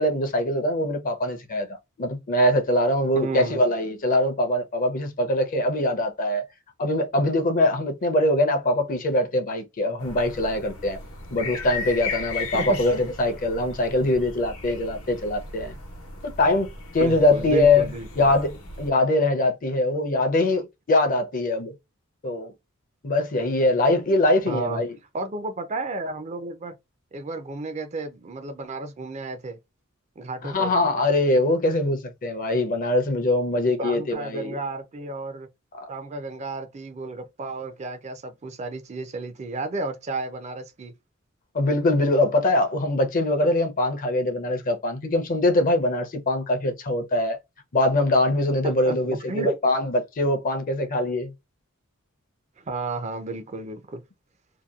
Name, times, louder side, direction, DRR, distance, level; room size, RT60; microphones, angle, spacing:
voice 1, 0.0-6.5 6.8-11.0 11.3-15.7 16.2-17.9 18.2-21.7 22.2-22.5 23.0-25.0 30.4-34.6 35.8-35.9 41.5-47.4 47.7-51.3, left 1 dB, 40° left, 0.6 m, -23 dB
voice 2, 3.1-3.6 12.5-12.8 17.0-18.3 24.5-24.8 25.1-26.8 27.1-29.6 30.2-30.7 33.8-35.5 35.9-40.9 48.6-49.5 52.6-54.0, right 2 dB, 30° right, 0.4 m, -32 dB
sound 1, 10.0-18.9, left 4 dB, 90° left, 1.0 m, -36 dB
2.8 x 2.2 x 2.3 m
head